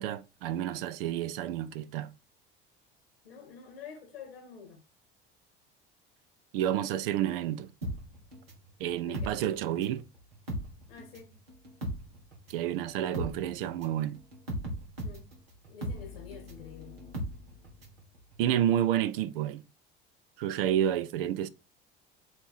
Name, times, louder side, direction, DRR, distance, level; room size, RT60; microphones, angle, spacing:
voice 1, 0.0-2.1 6.5-7.7 8.8-10.0 12.5-14.2 18.4-19.6 20.4-21.5, right 11 dB, 70° right, 0.6 m, -30 dB
voice 2, 3.2-4.8 9.0-9.3 10.9-11.4 15.0-15.3 15.7-17.0, left 6 dB, 85° left, 1.8 m, -48 dB
sound 1, 7.8-10.0 10.3-18.0 18.3-18.4, equal, 90° right, 1.6 m, -38 dB
7.9 x 2.9 x 4.5 m
hypercardioid pair, 65°, 29 cm